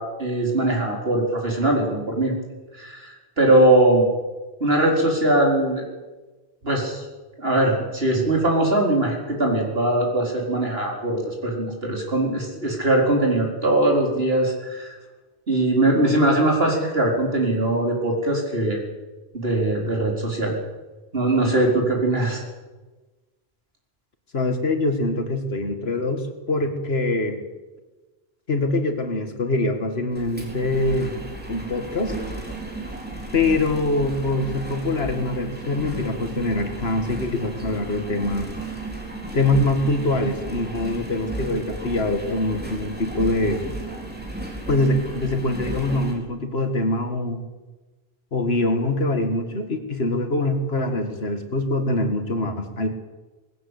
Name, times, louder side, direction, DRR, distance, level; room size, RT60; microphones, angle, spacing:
voice 1, 0.0-2.3 2.8-4.0 4.6-5.8 6.6-7.0 7.4-14.9 15.5-18.8 19.3-20.6 21.1-22.4, right 1 dB, 70° right, 0 dB, 4.8 m, -21 dB
voice 2, 24.3-27.4 28.5-31.1 31.5-32.2 33.3-38.6 39.3-43.6 44.7-47.4 48.3-52.9, left 2 dB, 75° left, 6 dB, 2.3 m, -24 dB
Engine, 30.1-46.1, right 2 dB, 10° right, 4.1 m, -34 dB
19.5 x 17.0 x 8.4 m, 1.2 s
omnidirectional pair, 1.1 m